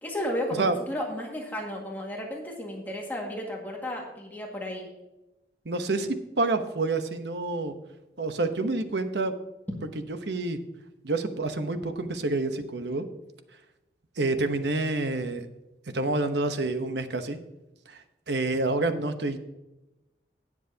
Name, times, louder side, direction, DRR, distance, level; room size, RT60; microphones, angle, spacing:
voice 1, 0.0-4.9, equal, 10° left, -1 dB, 1.9 m, -33 dB
voice 2, 5.6-7.7 8.2-9.3 10.1-10.6 11.0-13.0 14.2-15.5 15.9-17.4 17.9-19.4, right 2 dB, 80° right, 8 dB, 1.0 m, -28 dB
18.0 x 7.4 x 2.8 m, 0.98 s
head